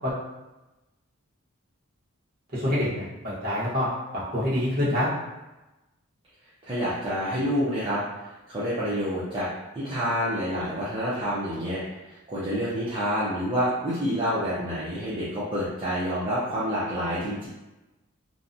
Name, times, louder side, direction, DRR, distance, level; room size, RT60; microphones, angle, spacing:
voice 1, 2.5-2.9 3.2-3.9 4.1-5.1, left 1 dB, 40° right, -9 dB, 1.0 m, -25 dB
voice 2, 6.6-9.5 9.7-12.0 12.3-17.5, equal, 25° right, -11 dB, 0.5 m, -28 dB
2.7 x 2.1 x 2.5 m, 1.0 s
head